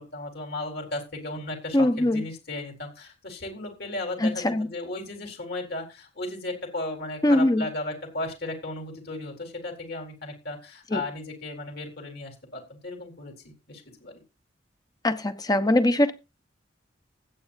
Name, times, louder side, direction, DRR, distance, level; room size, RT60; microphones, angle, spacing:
voice 1, 0.0-14.2, left 2 dB, 60° left, 4.1 m, -35 dB
voice 2, 1.7-2.2 4.2-4.7 7.2-7.6 10.9-11.0 15.0-16.1, left 1 dB, 20° left, 1.1 m, -22 dB
20.0 x 8.7 x 2.7 m
head